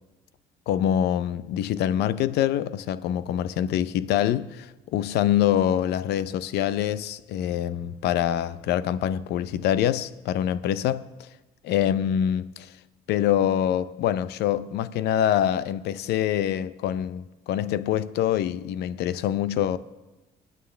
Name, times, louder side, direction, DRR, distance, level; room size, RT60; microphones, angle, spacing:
voice 1, 0.7-11.3 11.6-12.7 13.1-19.8, left 10 dB, 80° left, 0.6 m, -25 dB
28.0 x 9.3 x 3.4 m
cardioid pair, 110°, 17 cm